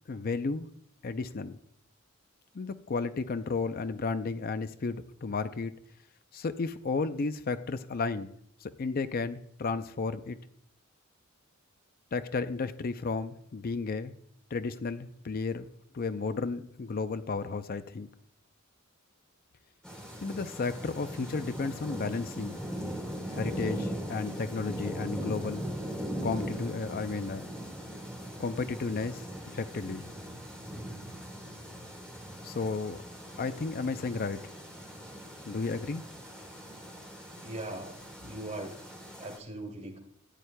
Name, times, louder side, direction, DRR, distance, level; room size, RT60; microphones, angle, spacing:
voice 1, 0.1-0.7 1.0-1.6 2.5-5.7 6.3-8.3 8.6-10.4 12.1-14.1 14.5-15.7 15.9-18.1 20.2-22.6 23.3-25.7 26.2-27.5 28.4-29.2 29.5-30.1 32.4-33.0 33.4-34.4 35.5-36.0, left 4 dB, 45° left, 11 dB, 0.5 m, -33 dB
sound 1, 19.8-39.4, equal, 5° left, 2.8 m, -40 dB
voice 2, 37.3-38.7 39.2-40.0, right 2 dB, 35° right, 2 dB, 2.4 m, -40 dB
13.5 x 10.0 x 2.2 m, 0.68 s
head